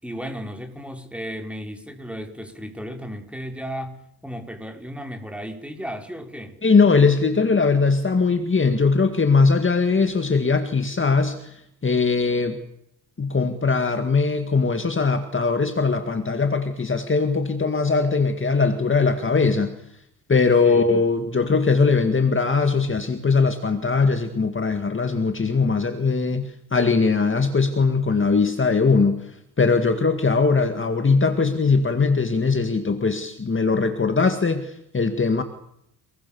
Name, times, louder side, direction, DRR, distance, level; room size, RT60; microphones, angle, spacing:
voice 1, 0.0-4.0 4.2-6.6 20.6-20.9, equal, 5° right, 4 dB, 4.5 m, -34 dB
voice 2, 6.6-12.6 13.2-19.7 20.3-35.4, left 4 dB, 30° left, 7 dB, 2.1 m, -20 dB
29.5 x 20.5 x 7.2 m, 0.74 s
cardioid pair, 115°, 39 cm